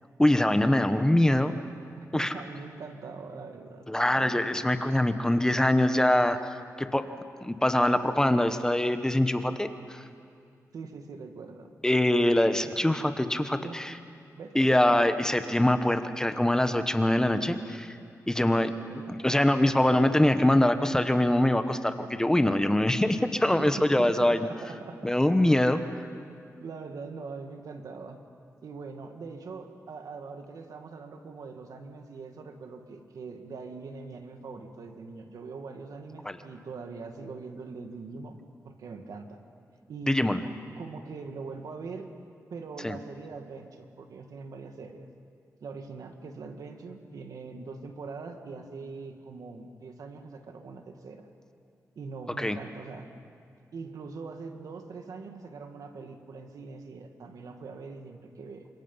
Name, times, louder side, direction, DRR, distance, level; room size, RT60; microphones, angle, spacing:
voice 1, 0.2-1.5 2.1-2.3 3.9-6.4 6.8-7.1 7.4-10.0 11.8-13.9 14.5-18.0 18.3-18.8 19.1-24.5 25.0-25.8 36.2-36.4 40.1-40.4 42.8-43.0 52.4-52.6, left 1 dB, 10° left, 9 dB, 1.2 m, -24 dB
voice 2, 2.0-4.7 10.7-11.7 13.6-13.8 14.4-15.2 18.8-19.2 23.6-25.1 26.6-28.2 28.6-39.4 39.9-40.3 40.8-42.1 42.5-45.1 45.6-51.3 52.0-53.1 53.7-58.7, right 4 dB, 80° right, 5 dB, 2.1 m, -42 dB
28.5 x 26.0 x 5.6 m, 2.4 s
cardioid pair, 85°, 6 cm